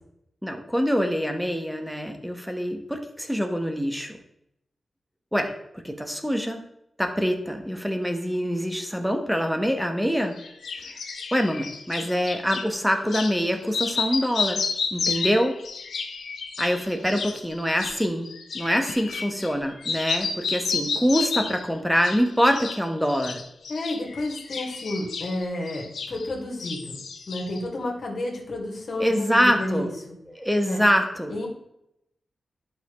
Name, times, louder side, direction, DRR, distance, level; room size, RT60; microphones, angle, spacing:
voice 1, 0.4-4.2 5.3-5.5 5.8-6.6 7.0-10.4 10.8-10.9 11.3-14.6 14.9-15.6 16.6-18.3 18.5-23.4 29.0-29.9 30.3-31.5, equal, ahead, 4 dB, 1.3 m, -25 dB
sound 1, 10.4-12.7 13.1-13.4 13.7-19.6 19.8-21.7 22.0-22.8 23.1-26.3 26.6-27.6, left 5 dB, 90° left, 1.0 m, -31 dB
voice 2, 23.7-27.0 27.3-30.2 30.6-30.8 31.3-31.5, left 1 dB, 60° left, -1 dB, 2.4 m, -30 dB
11.5 x 5.8 x 3.2 m, 0.79 s
wide cardioid pair, 80°, 0 cm